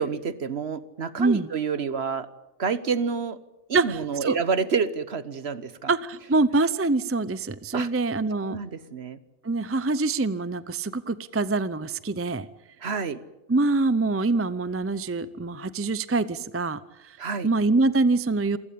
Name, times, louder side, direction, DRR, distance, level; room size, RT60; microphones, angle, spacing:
voice 1, 0.0-2.3 2.6-3.4 3.7-5.9 7.7-7.9 8.4-9.2 12.8-13.2 17.2-17.5, right 5 dB, 55° right, 14 dB, 1.3 m, -28 dB
voice 2, 1.2-1.5 3.7-4.4 5.9-8.6 9.4-12.5 13.5-16.8 17.4-18.6, right 3 dB, 15° right, 15 dB, 0.5 m, -24 dB
27.5 x 16.0 x 8.6 m, 0.98 s
omnidirectional pair, 1.4 m